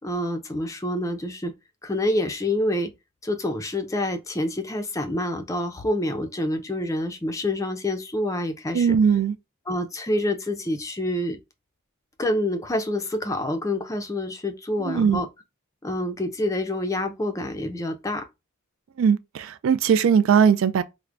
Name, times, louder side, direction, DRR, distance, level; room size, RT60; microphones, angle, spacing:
voice 1, 0.0-1.5 1.8-2.9 3.2-8.9 9.7-11.4 12.2-15.3 15.8-18.3, left 1 dB, 15° left, 0.4 m, -27 dB
voice 2, 8.7-9.3 14.8-15.2 19.0-20.8, right 7 dB, 70° right, 0.3 m, -19 dB
4.5 x 2.1 x 2.5 m
head